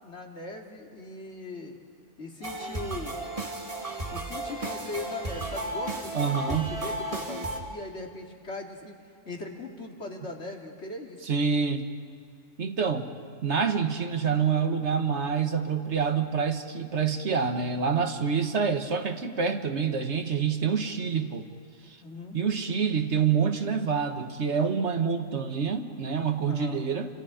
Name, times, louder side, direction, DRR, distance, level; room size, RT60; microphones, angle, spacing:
voice 1, 0.0-1.8 2.2-3.2 4.1-8.9 9.2-11.2 22.0-22.4 26.4-26.8, left 2 dB, 60° left, 1 dB, 2.7 m, -39 dB
sound 1, 2.4-7.6, right 1 dB, 25° right, 2.2 m, -34 dB
voice 2, 6.1-6.7 11.3-11.9 12.6-13.1 13.4-21.4 22.3-27.1, right 6 dB, 60° right, 6 dB, 1.7 m, -27 dB
29.5 x 27.0 x 5.1 m, 2.3 s
omnidirectional pair, 1.3 m